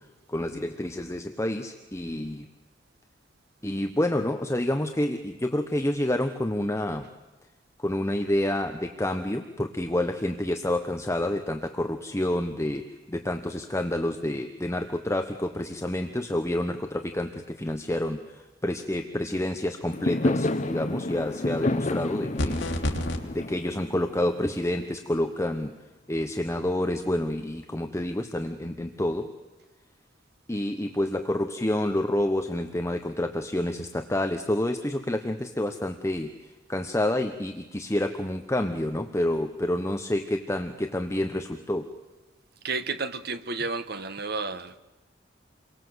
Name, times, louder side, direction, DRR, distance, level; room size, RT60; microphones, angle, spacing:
voice 1, 0.3-2.5 3.6-7.1 7.8-12.8 13.1-18.2 18.6-22.6 23.2-25.7 26.1-29.3 30.5-36.3 36.7-41.9, left 1 dB, 15° left, 1.1 m, -28 dB
Fireworks, 19.9-25.1, left 2 dB, 40° left, 0.9 m, -30 dB
sound 1, 22.4-23.2, left 1 dB, 85° left, 3.1 m, -27 dB
voice 2, 42.6-44.8, right 4 dB, 60° right, 1.4 m, -31 dB
29.0 x 23.5 x 8.1 m
head